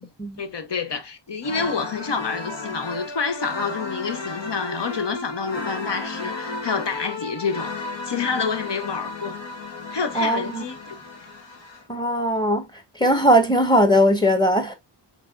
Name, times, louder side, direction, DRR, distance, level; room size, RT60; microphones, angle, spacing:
voice 1, 0.4-9.4 9.9-11.0, left 5 dB, 75° left, 0.8 m, -28 dB
sound 1, 1.4-11.8, left 2 dB, 90° left, 1.2 m, -34 dB
voice 2, 10.1-10.6 11.9-12.6 13.0-14.7, equal, 10° left, 1.1 m, -19 dB
4.6 x 3.4 x 2.4 m
wide cardioid pair, 55°, 43 cm